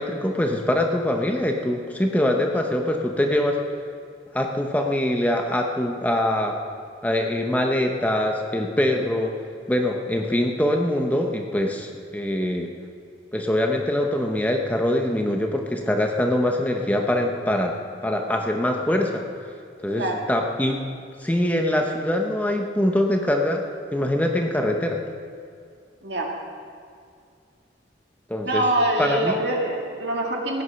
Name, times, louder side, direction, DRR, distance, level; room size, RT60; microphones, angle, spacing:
voice 1, 0.0-3.6 4.3-6.6 7.0-9.3 9.7-12.7 13.3-17.8 18.0-19.2 19.8-20.8 21.2-23.6 23.9-25.0 28.3-28.6 29.0-29.4, left 1 dB, 10° left, 2 dB, 0.8 m, -23 dB
voice 2, 19.9-20.2 26.0-26.3 28.5-30.6, right 1 dB, 65° right, 0 dB, 2.0 m, -24 dB
16.0 x 9.5 x 5.8 m, 2.3 s
head